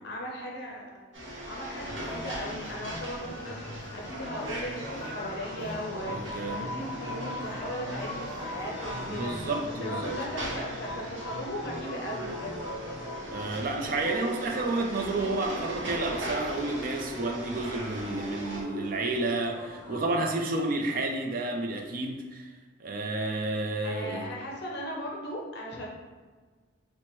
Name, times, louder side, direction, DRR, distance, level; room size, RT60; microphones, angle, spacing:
voice 1, 0.0-1.1 1.5-9.5 9.8-12.8 23.8-25.9, equal, 55° left, -2 dB, 0.6 m, -37 dB
sound 1, 1.1-18.6, right 1 dB, 65° right, 0.8 m, -40 dB
sound 2, 1.7-13.6, left 1 dB, 25° left, 0.9 m, -40 dB
voice 2, 6.1-6.6 9.0-10.2 13.3-22.5 22.8-24.3, right 2 dB, 45° right, 3 dB, 0.4 m, -31 dB
sound 3, 11.7-20.2, right 1 dB, 25° right, 1.2 m, -43 dB
4.4 x 2.1 x 3.0 m, 1.4 s
head